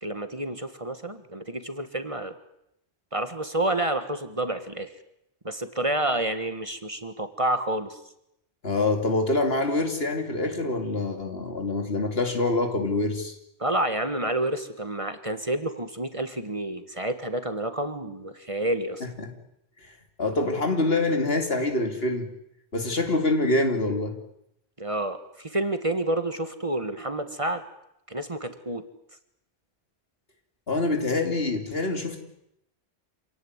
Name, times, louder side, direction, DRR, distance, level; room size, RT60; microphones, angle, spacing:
voice 1, 0.0-2.3 3.1-4.9 5.4-8.0 13.6-19.0 24.8-27.6 28.1-28.8, right 1 dB, 30° right, 9 dB, 1.7 m, -29 dB
voice 2, 8.6-13.3 19.2-19.3 20.2-22.3 22.7-24.2 30.7-32.2, left 2 dB, 65° left, 5 dB, 3.2 m, -25 dB
27.0 x 17.5 x 9.6 m, 0.80 s
omnidirectional pair, 1.1 m